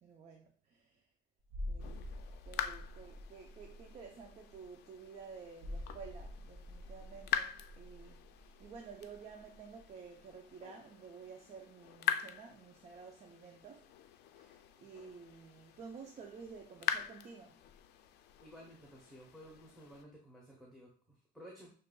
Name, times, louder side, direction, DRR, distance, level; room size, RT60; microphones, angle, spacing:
voice 1, 0.0-1.0 1.7-2.0 2.4-13.9 14.3-17.6, right 5 dB, 40° right, 0.6 m, -52 dB
sound 1, 1.5-9.9 10.2-10.3, left 1 dB, 80° right, 0.8 m, -47 dB
sound 2, 1.8-20.0, left 10 dB, 75° left, 0.4 m, -44 dB
voice 2, 18.4-21.7, equal, ahead, 1.0 m, -55 dB
6.7 x 2.6 x 2.3 m
cardioid pair, 110°, 17 cm